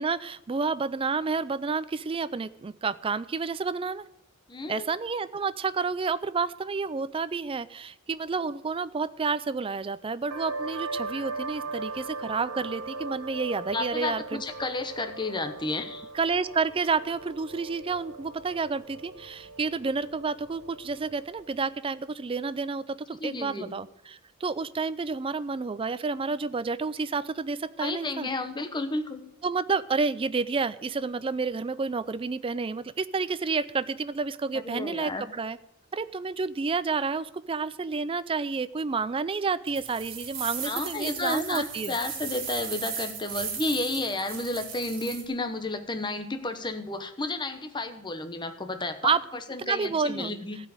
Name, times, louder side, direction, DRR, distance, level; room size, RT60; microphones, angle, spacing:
voice 1, 0.0-4.0 4.7-14.4 16.1-28.3 29.4-35.6 35.9-42.0 49.0-49.2 49.6-50.3, right 4 dB, 25° right, 16 dB, 0.4 m, -30 dB
voice 2, 4.5-4.9 13.7-16.1 23.2-23.7 27.8-29.2 34.6-35.2 40.6-49.2 49.5-50.6, left 2 dB, 20° left, 7 dB, 1.0 m, -32 dB
sound 1, 10.3-21.6, right 3 dB, 80° right, 0.9 m, -39 dB
sound 2, 39.7-45.2, right 6 dB, 45° right, 2.7 m, -36 dB
14.5 x 5.1 x 8.9 m, 0.80 s
head